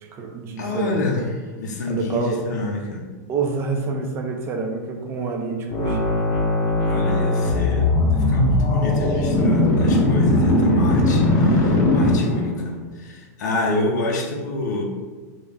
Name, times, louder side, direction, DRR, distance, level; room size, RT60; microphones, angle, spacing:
voice 1, 0.0-1.0 1.9-2.5 3.3-6.2, right 4 dB, 25° right, 4 dB, 0.3 m, -27 dB
voice 2, 0.6-1.3 1.6-3.1 6.8-14.8, left 2 dB, 85° left, 0 dB, 0.5 m, -28 dB
sound 1, 5.7-12.6, left 1 dB, 40° left, 0.6 m, -19 dB
2.4 x 2.0 x 3.3 m, 1.4 s
supercardioid pair, 145°, 9 cm